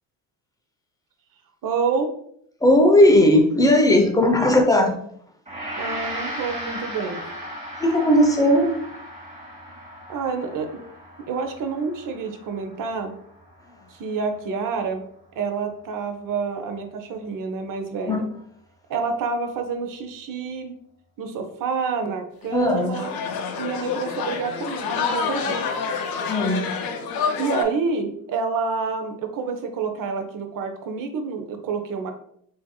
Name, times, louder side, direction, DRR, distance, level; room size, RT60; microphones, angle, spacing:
voice 1, 1.6-2.1 5.8-7.2 10.1-10.7 11.3-13.1 13.9-15.0 15.4-18.3 18.9-20.8 21.2-23.1 23.5-25.6 27.4-32.1, right 5 dB, 45° right, 6 dB, 0.6 m, -28 dB
voice 2, 2.6-5.0 7.8-8.8 18.1-18.3 22.5-23.0 26.3-27.0, left 1 dB, 10° left, 3 dB, 0.5 m, -17 dB
Gong, 5.5-14.7, equal, 15° right, 1.2 m, -37 dB
sound 1, 22.4-27.6, left 5 dB, 50° left, 0.6 m, -28 dB
3.3 x 2.7 x 2.2 m, 0.67 s
hypercardioid pair, 55°, 48 cm